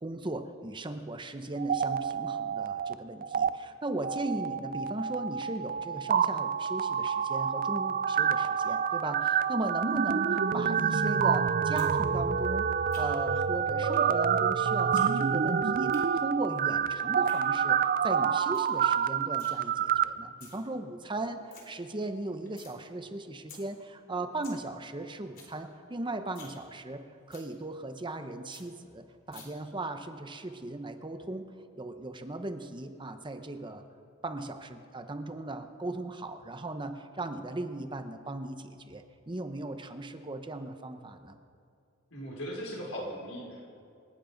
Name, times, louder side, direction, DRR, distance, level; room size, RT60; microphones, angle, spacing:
voice 1, 0.0-33.8 34.2-41.4, right 2 dB, 25° right, 7 dB, 0.8 m, -37 dB
sound 1, 1.6-2.9 3.2-3.5 4.0-20.0, right 7 dB, 40° right, 0.4 m, -28 dB
sound 2, 11.8-11.9 12.2-13.3 13.9-14.1 14.4-15.1 15.4-16.0 17.0-17.4 17.9-18.0 18.2-18.3 18.5-18.8 19.0-19.5 20.2-20.6 21.0-21.1 21.3-21.6 22.0-22.8 23.1-23.2 23.5-23.6 24.0-24.1 24.3-24.6 24.9-25.0 25.2-25.5 25.9-26.0 26.3-26.6 26.9-27.0 27.3-27.5 27.9-28.0 28.2-28.3 28.5-28.6 29.3-29.4, left 5 dB, 45° left, 3.7 m, -51 dB
voice 2, 42.1-43.8, equal, 80° left, -3 dB, 4.9 m, -39 dB
27.5 x 9.5 x 5.2 m, 2.5 s
head